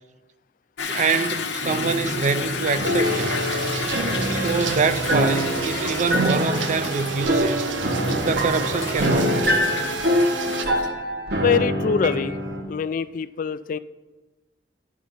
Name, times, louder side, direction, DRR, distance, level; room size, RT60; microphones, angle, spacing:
Toilet flush / Drip / Trickle dribble, 0.8-10.9, left 4 dB, 65° left, 0.9 m, -32 dB
voice 1, 0.9-3.5 4.3-7.7 8.2-9.6, right 5 dB, 40° right, 0.4 m, -25 dB
sound 1, 1.6-12.6, equal, 60° right, 1.1 m, -25 dB
sound 2, 3.0-10.7, right 5 dB, 85° right, 0.6 m, -31 dB
voice 2, 11.4-12.4 12.6-13.8, left 6 dB, 45° left, 0.3 m, -24 dB
10.0 x 5.1 x 5.5 m
head